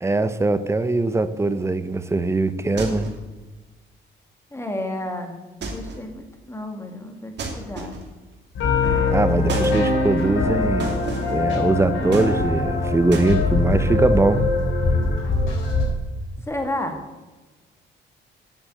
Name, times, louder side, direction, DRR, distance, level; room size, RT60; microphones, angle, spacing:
voice 1, 0.0-3.1 9.1-10.9 11.3-14.5, right 2 dB, 15° right, 0.7 m, -21 dB
sound 1, 2.8-3.3 5.6-6.1 7.4-8.2 9.5-9.8 10.8-11.4 12.1-12.7 13.1-13.3, right 3 dB, 60° right, 2.7 m, -32 dB
voice 2, 4.5-8.0 16.4-17.0, left 1 dB, 15° left, 2.1 m, -31 dB
sound 2, 8.5-15.8, left 3 dB, 80° left, 4.0 m, -22 dB
9.1 x 7.1 x 7.8 m
cardioid pair, 90°, 20 cm